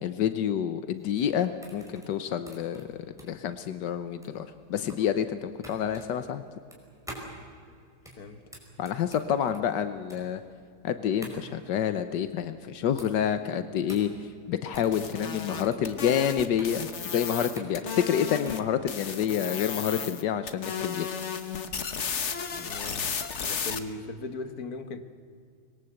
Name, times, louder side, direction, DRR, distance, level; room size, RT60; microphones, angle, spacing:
voice 1, 0.0-2.9 3.3-6.4 8.8-10.4 10.8-21.1, left 9 dB, 85° left, 10 dB, 1.5 m, -28 dB
sound 1, 1.0-18.7, right 1 dB, ahead, 4.9 m, -48 dB
sound 2, 14.7-18.6 18.9-20.2 20.5-23.8, left 6 dB, 45° left, 1.4 m, -34 dB
voice 2, 22.5-23.2 23.4-25.0, left 3 dB, 60° left, 9 dB, 1.9 m, -38 dB
25.5 x 21.0 x 8.0 m, 2.2 s
omnidirectional pair, 1.8 m